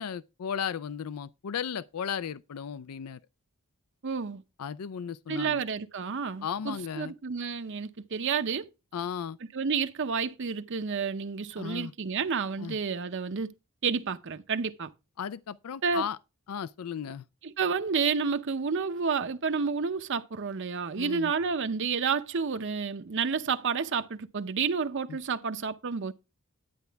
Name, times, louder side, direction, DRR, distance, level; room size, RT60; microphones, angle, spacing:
voice 1, 0.0-3.2 4.6-5.6 6.4-7.1 8.9-9.4 11.6-11.9 12.6-12.8 15.2-16.2 16.5-17.2 21.0-21.3 25.1-25.2, left 7 dB, 80° left, 0.4 m, -35 dB
voice 2, 4.0-4.4 5.3-8.7 9.5-13.5 13.8-14.9 15.8-16.0 17.4-26.1, right 5 dB, 55° right, 0.6 m, -30 dB
10.0 x 9.4 x 3.4 m
head